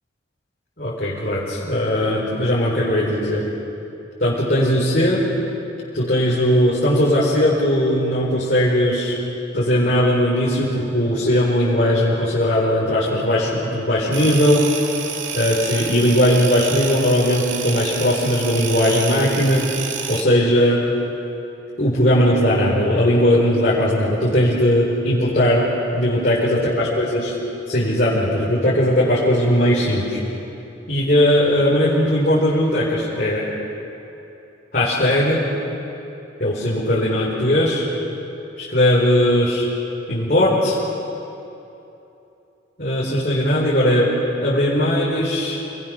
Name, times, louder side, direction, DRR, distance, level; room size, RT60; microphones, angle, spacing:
voice 1, 0.8-3.5 4.2-5.3 5.9-9.2 9.5-14.7 15.3-19.8 20.1-20.9 21.8-27.3 27.7-30.2 30.9-33.5 34.7-35.5 36.4-37.9 38.6-39.7 40.1-40.8 42.8-45.6, equal, 50° left, -8 dB, 4.5 m, -18 dB
sound 1, 14.1-20.2, right 6 dB, 85° right, 2.3 m, -29 dB
28.5 x 21.5 x 6.8 m, 2.9 s
head